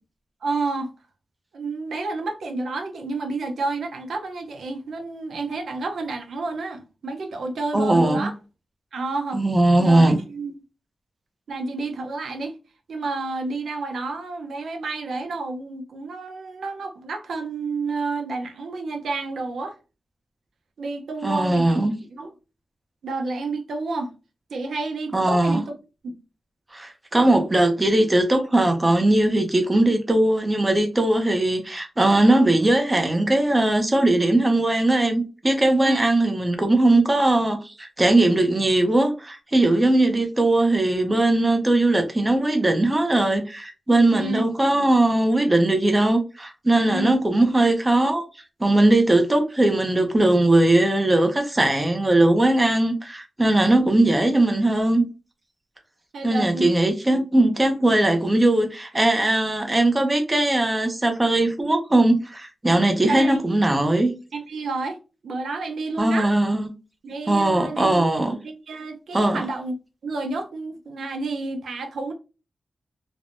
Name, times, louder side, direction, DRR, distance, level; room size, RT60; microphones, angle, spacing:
voice 1, 0.4-0.9 1.5-8.3 8.9-9.4 9.8-10.5 11.5-12.6 12.9-19.8 20.8-21.8 22.1-22.3 23.0-24.1 24.5-25.7 26.0-26.2 35.8-36.0 44.1-44.5 46.9-47.2 56.1-56.7 63.1-63.4 64.3-65.0 65.2-66.3 67.0-68.1 68.4-69.7 70.0-72.1, right 3 dB, 85° right, 0.6 m, -30 dB
voice 2, 7.7-8.3 9.3-10.2 21.2-21.9 25.1-25.6 26.7-48.2 48.6-55.0 56.2-64.1 66.0-66.7 67.3-68.4 69.1-69.5, right 1 dB, 15° right, 0.5 m, -19 dB
3.3 x 2.1 x 2.5 m
wide cardioid pair, 160°, 0 cm